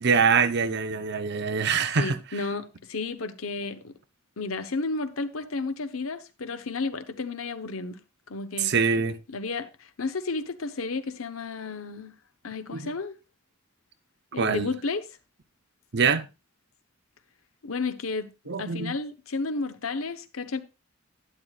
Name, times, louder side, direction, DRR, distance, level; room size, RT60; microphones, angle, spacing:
voice 1, 0.0-2.2 8.6-9.2 12.7-12.9 14.4-14.7 15.9-16.3 18.5-18.9, right 5 dB, 55° right, 0.8 m, -24 dB
voice 2, 2.0-3.9 4.4-8.0 8.3-8.7 9.3-9.7 10.0-12.1 12.4-13.1 14.3-15.0 17.6-18.3 18.6-20.6, left 3 dB, 80° left, 1.0 m, -32 dB
11.5 x 10.0 x 2.4 m
head